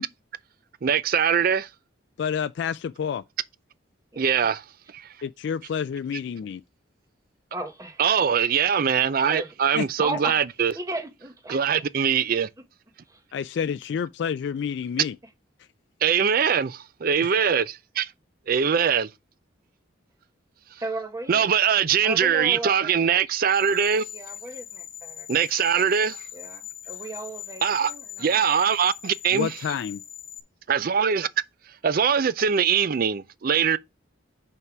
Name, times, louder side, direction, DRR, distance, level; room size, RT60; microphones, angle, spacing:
voice 1, 0.8-1.7 4.2-4.6 4.9-5.1 8.0-10.7 11.5-12.5 16.0-18.1 18.5-19.1 21.3-24.0 25.3-26.2 27.6-27.9 28.2-29.5 30.7-31.3 31.8-33.8, right 7 dB, 50° right, 0.4 m, -22 dB
voice 2, 2.2-3.2 5.2-6.6 9.8-9.9 13.3-15.2 29.3-30.0, left 7 dB, 65° left, 0.3 m, -29 dB
voice 3, 7.5-8.0 9.3-9.5 10.0-10.4 10.7-11.8 13.1-13.2 20.8-21.5 22.0-23.2 24.1-25.5 26.3-28.4, right 2 dB, 15° right, 1.0 m, -36 dB
sound 1, 23.5-30.4, left 10 dB, 35° left, 1.3 m, -41 dB
5.5 x 4.7 x 6.0 m
head